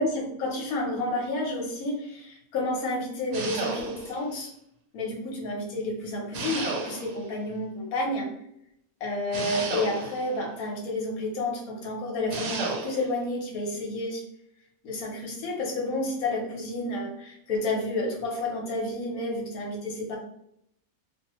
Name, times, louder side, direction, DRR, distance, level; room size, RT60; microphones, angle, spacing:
voice 1, 0.0-4.5 4.9-8.3 9.0-14.2 14.8-20.2, left 2 dB, 80° left, 0 dB, 1.3 m, -30 dB
sound 1, 3.3-4.2 6.3-7.3 9.3-10.4 12.3-13.1, right 3 dB, 65° right, 0.8 m, -32 dB
2.6 x 2.4 x 2.9 m, 0.74 s
omnidirectional pair, 1.5 m